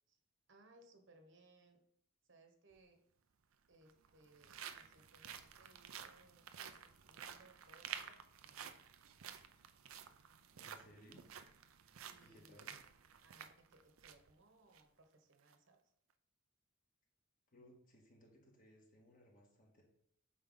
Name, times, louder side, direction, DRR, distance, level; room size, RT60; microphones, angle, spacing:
voice 1, 0.5-1.8 2.2-3.0 3.7-8.8 9.3-9.5 12.1-12.6 13.2-15.8, right 2 dB, 60° right, 5 dB, 1.2 m, -67 dB
sound 1, 2.7-2.8 3.7-14.3 14.7-14.8 15.3-15.5, right 8 dB, 85° right, 0.6 m, -52 dB
voice 2, 10.6-11.3 12.2-12.7 17.5-19.8, equal, 40° left, -1 dB, 1.9 m, -63 dB
8.5 x 5.7 x 4.0 m, 0.71 s
head